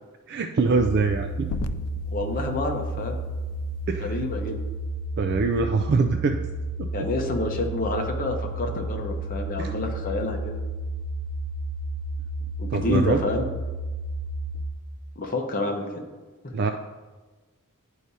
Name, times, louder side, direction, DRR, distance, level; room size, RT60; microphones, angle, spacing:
voice 1, 0.3-1.5 3.9-4.2 5.2-6.4 6.8-6.9 9.6-9.7 12.7-13.2 16.5-16.7, right 4 dB, 50° right, 6 dB, 0.3 m, -23 dB
sound 1, 0.6-5.0, left 3 dB, 85° left, 0.3 m, -39 dB
sound 2, 1.1-14.7, right 2 dB, 55° left, 1.5 m, -32 dB
voice 2, 2.1-3.2 4.0-4.6 6.9-10.6 12.6-13.4 15.2-16.0 16.4-16.5, left 2 dB, 40° left, 2 dB, 0.8 m, -28 dB
10.5 x 4.8 x 2.7 m, 1.3 s
head